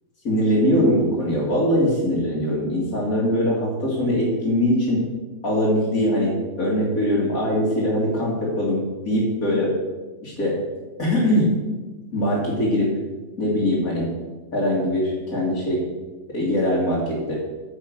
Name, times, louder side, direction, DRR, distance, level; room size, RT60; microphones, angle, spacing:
voice 1, 0.2-5.0 5.4-9.7 10.2-10.5 11.0-11.5 12.1-12.9 13.4-14.1 14.5-15.8 16.3-17.4, equal, 60° left, -7 dB, 2.8 m, -22 dB
9.6 x 6.4 x 6.5 m, 1.2 s
omnidirectional pair, 1.7 m